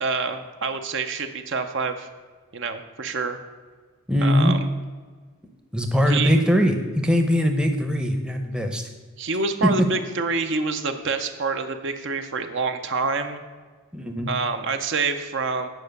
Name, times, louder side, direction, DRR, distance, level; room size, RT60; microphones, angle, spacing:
voice 1, 0.0-2.1 2.5-3.4 4.2-4.6 6.1-6.3 9.2-13.4 14.3-15.7, right 4 dB, 55° right, 7 dB, 0.7 m, -27 dB
voice 2, 4.1-4.5 5.7-8.9 9.6-9.9 13.9-14.3, equal, 5° right, 4 dB, 0.7 m, -21 dB
9.0 x 5.3 x 6.6 m, 1.5 s
head